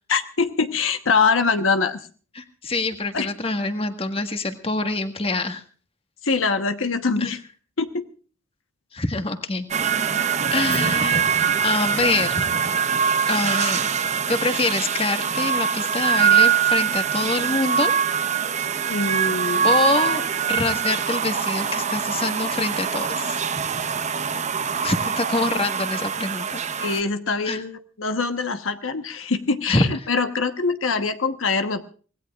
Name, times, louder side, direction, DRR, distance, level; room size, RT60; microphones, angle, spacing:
voice 1, 0.1-2.0 3.1-3.3 6.2-7.4 7.8-8.0 18.9-19.7 25.5-25.6 26.8-31.8, left 4 dB, 90° left, 8 dB, 1.2 m, -23 dB
voice 2, 2.3-5.6 7.2-7.3 8.9-9.7 10.5-11.3 11.6-12.5 13.3-13.9 14.3-17.9 19.6-23.4 24.8-26.6 27.5-27.6 29.7-29.8, left 3 dB, 30° left, 7 dB, 1.6 m, -25 dB
sound 1, 9.7-27.0, right 7 dB, 35° right, 0.8 m, -23 dB
25.5 x 18.5 x 2.4 m, 0.40 s
head